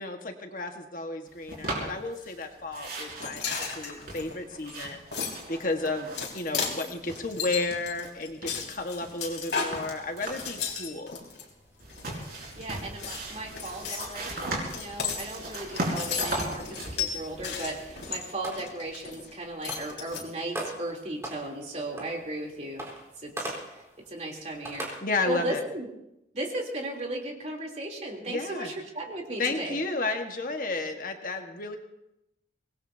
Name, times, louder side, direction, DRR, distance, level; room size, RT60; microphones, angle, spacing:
voice 1, 0.0-5.0 5.5-11.2 25.0-25.6 28.3-28.7 29.4-31.8, left 3 dB, 50° left, 4 dB, 1.6 m, -32 dB
sound 1, 1.5-2.4 2.7-6.5 6.7-8.1 8.4-10.6 11.8-18.1, right 2 dB, 55° right, 5.2 m, -37 dB
sound 2, 3.2-11.4 11.9-12.7 13.0-19.3 19.6-20.2, left 6 dB, 70° left, 3.9 m, -35 dB
sound 3, 9.9-24.9, right 1 dB, 15° right, 4.1 m, -45 dB
voice 2, 12.6-22.9 23.2-24.9 25.3-25.9 26.3-29.8, right 1 dB, 40° right, -1 dB, 3.3 m, -36 dB
25.0 x 20.0 x 2.8 m, 0.86 s
head